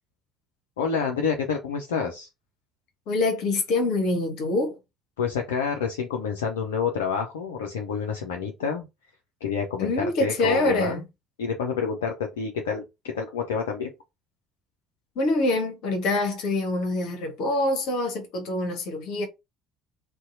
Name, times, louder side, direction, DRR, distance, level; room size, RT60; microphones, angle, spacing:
voice 1, 0.8-2.3 5.2-8.8 9.4-11.0 11.4-12.8 13.1-13.9, left 6 dB, 75° left, 0.4 m, -28 dB
voice 2, 3.1-4.7 9.8-11.0 15.2-19.3, left 2 dB, 60° left, 0.8 m, -25 dB
2.7 x 2.1 x 2.5 m
figure-of-eight pair, 55°, 0 cm